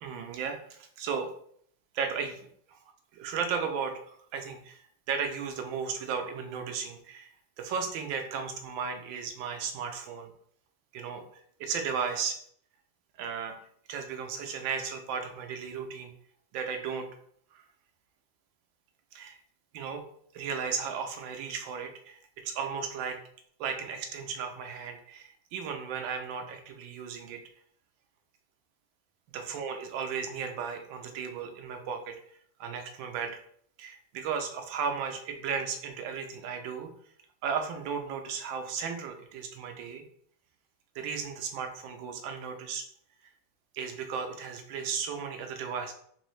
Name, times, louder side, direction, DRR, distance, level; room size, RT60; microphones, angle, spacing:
voice 1, 0.0-1.3 1.9-2.4 2.7-2.8 3.2-4.8 5.1-7.3 7.6-10.3 10.9-11.2 11.6-12.4 13.2-13.5 13.9-16.1 16.5-17.1 17.5-17.6 19.1-19.4 19.7-20.0 20.3-23.2 23.6-27.4 29.3-32.2 32.6-33.4 33.8-36.9 37.4-40.0 40.9-42.8 43.7-45.9, right 6 dB, 85° right, 5 dB, 1.4 m, -35 dB
4.0 x 2.7 x 3.1 m, 0.65 s
omnidirectional pair, 2.1 m